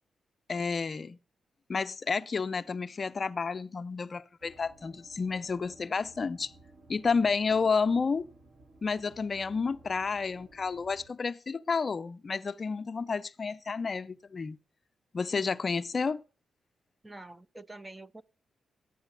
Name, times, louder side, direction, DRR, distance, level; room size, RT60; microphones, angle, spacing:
voice 1, 0.5-1.2 1.7-6.5 6.9-8.2 8.8-14.6 15.1-16.2, left 5 dB, 40° left, 0.5 m, -30 dB
sound 1, 4.4-11.1, right 2 dB, 75° right, 3.4 m, -57 dB
voice 2, 17.0-18.2, right 2 dB, 15° right, 0.5 m, -46 dB
13.0 x 9.0 x 6.7 m
cardioid pair, 90°, 0 cm